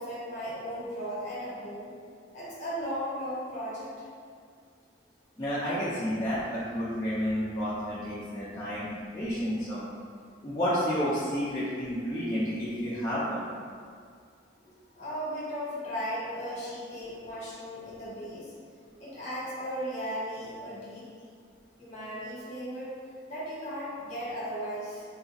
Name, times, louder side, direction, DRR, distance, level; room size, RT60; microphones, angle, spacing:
voice 1, 0.0-1.9 2.3-3.9 15.0-18.5 19.0-21.0 21.8-22.9 23.3-25.0, equal, 40° left, -9 dB, 1.1 m, -36 dB
voice 2, 5.4-9.8 10.4-13.5, equal, 20° left, -11 dB, 0.4 m, -30 dB
3.8 x 2.7 x 2.4 m, 2.1 s
head